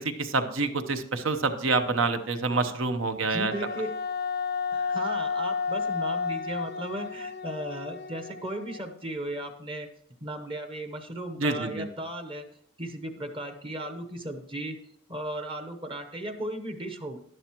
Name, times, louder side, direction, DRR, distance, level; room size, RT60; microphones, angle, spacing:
voice 1, 0.2-3.5 11.4-11.9, right 3 dB, 65° right, 8 dB, 0.9 m, -27 dB
voice 2, 3.2-3.9 4.7-9.9 10.2-12.4 12.8-14.8 15.1-17.2, right 1 dB, 25° right, 7 dB, 0.9 m, -36 dB
Wind instrument woodwind instrument, 3.5-9.0, left 5 dB, 50° left, 0.5 m, -32 dB
11.5 x 11.0 x 3.0 m, 0.66 s
head